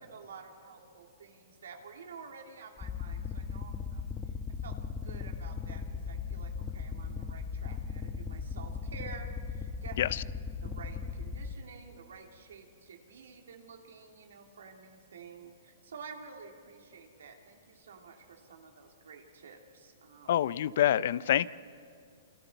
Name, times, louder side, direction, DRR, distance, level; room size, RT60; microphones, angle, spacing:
voice 1, 0.1-4.1 4.5-10.0 10.6-20.3, right 5 dB, 85° right, 2 dB, 3.1 m, -50 dB
sound 1, 2.8-11.5, left 5 dB, 15° left, 1.0 m, -38 dB
voice 2, 20.3-21.5, left 11 dB, 60° left, 18 dB, 0.5 m, -26 dB
28.0 x 26.0 x 4.6 m, 2.3 s
hypercardioid pair, 155°, 0 cm